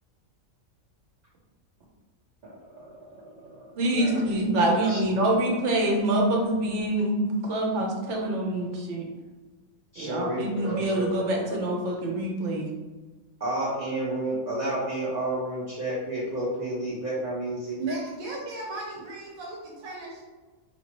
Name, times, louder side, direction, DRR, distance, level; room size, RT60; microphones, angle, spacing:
voice 1, 2.4-3.6 3.9-4.2 4.5-5.2 9.9-11.1 11.4-11.6 13.4-17.8, right 1 dB, 40° right, -6 dB, 0.7 m, -31 dB
voice 2, 3.8-9.1 10.0-12.7, right 1 dB, 60° right, 0 dB, 1.1 m, -25 dB
voice 3, 17.7-20.2, right 2 dB, 85° right, -3 dB, 1.3 m, -35 dB
4.9 x 3.0 x 2.9 m, 1.2 s
omnidirectional pair, 1.4 m